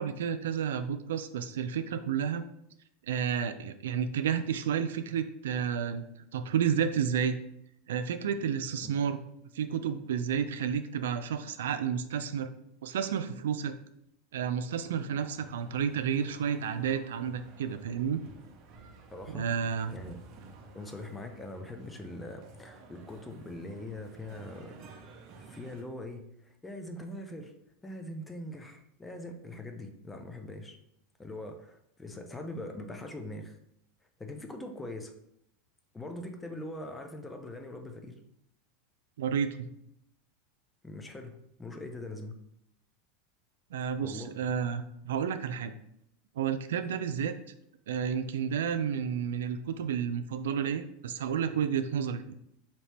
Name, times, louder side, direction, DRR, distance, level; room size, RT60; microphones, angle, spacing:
voice 1, 0.0-2.4 3.1-6.1 6.3-7.4 7.9-9.2 9.5-12.5 12.8-13.7 14.3-18.2 19.3-19.9 39.2-39.7 43.7-45.7 46.4-47.3 47.9-52.2, right 7 dB, 90° right, 10 dB, 0.3 m, -31 dB
sound 1, 15.1-25.8, right 3 dB, 45° right, 0.7 m, -52 dB
voice 2, 19.1-19.5 19.9-20.2 20.7-25.0 25.4-27.5 27.8-30.8 31.2-33.6 34.2-35.1 35.9-38.2 40.8-42.4 44.0-44.3, left 1 dB, 10° left, 5 dB, 0.6 m, -42 dB
4.1 x 2.8 x 3.4 m, 0.75 s
supercardioid pair, 125°, 0 cm